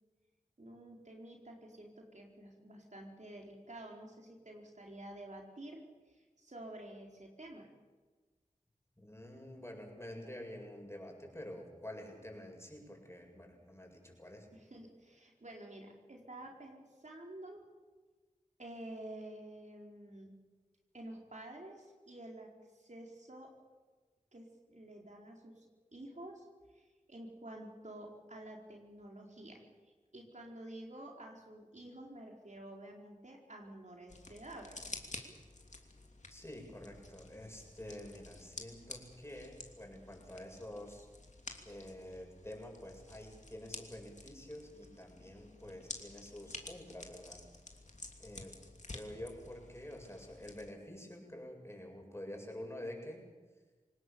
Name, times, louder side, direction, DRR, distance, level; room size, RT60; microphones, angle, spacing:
voice 1, 0.6-7.7 14.5-17.6 18.6-20.3 20.9-23.5 24.3-25.6 25.9-26.5 26.7-35.0, right 1 dB, 60° right, 0 dB, 4.6 m, -50 dB
voice 2, 9.0-14.5 36.3-41.1 41.6-47.4 48.2-48.5 48.9-53.2, left 1 dB, 20° left, 1 dB, 7.6 m, -48 dB
sound 1, 34.1-50.7, left 2 dB, 60° left, 2.9 m, -51 dB
26.5 x 19.0 x 7.1 m, 1.3 s
wide cardioid pair, 45°, 14 cm